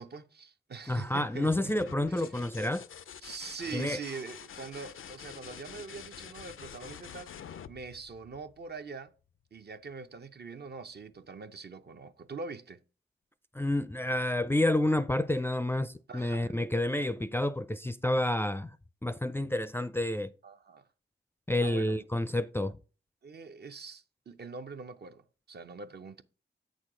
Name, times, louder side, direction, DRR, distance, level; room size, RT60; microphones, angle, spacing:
voice 1, 0.0-1.7 2.1-2.3 3.2-7.3 7.7-9.1 9.5-12.8 16.1-16.5 20.4-20.9 21.6-22.0 23.2-26.2, right 4 dB, 55° right, 0.6 m, -43 dB
voice 2, 0.9-2.8 3.7-4.0 13.5-18.7 19.0-20.3 21.5-22.8, left 1 dB, 10° left, 0.4 m, -29 dB
sound 1, 1.3-8.9 10.7-11.2, left 8 dB, 80° left, 0.5 m, -47 dB
8.2 x 6.3 x 3.7 m
cardioid pair, 55°, 21 cm